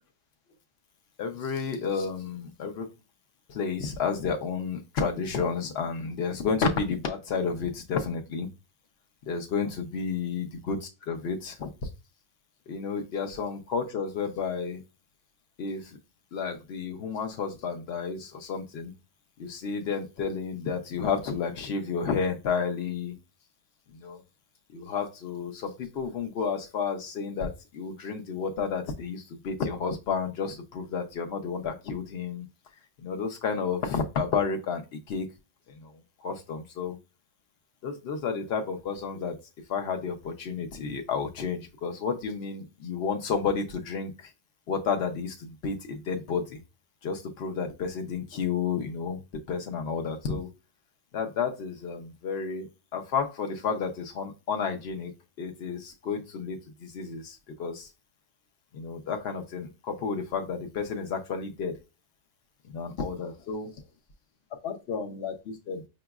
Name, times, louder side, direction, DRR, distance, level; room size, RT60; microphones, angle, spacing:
voice 1, 1.2-2.9 3.5-8.5 9.3-11.7 12.7-14.8 15.6-16.0 16.3-18.9 19.4-23.1 23.9-24.2 24.7-32.5 33.0-35.3 35.7-35.9 36.2-37.0 37.8-39.4 39.7-44.3 44.7-46.6 47.0-49.2 49.5-50.5 51.1-57.9 58.7-61.8 62.7-63.7 64.6-65.8, left 5 dB, 55° left, 4 dB, 0.8 m, -31 dB
5.0 x 2.9 x 2.3 m, 0.27 s
omnidirectional pair, 1.7 m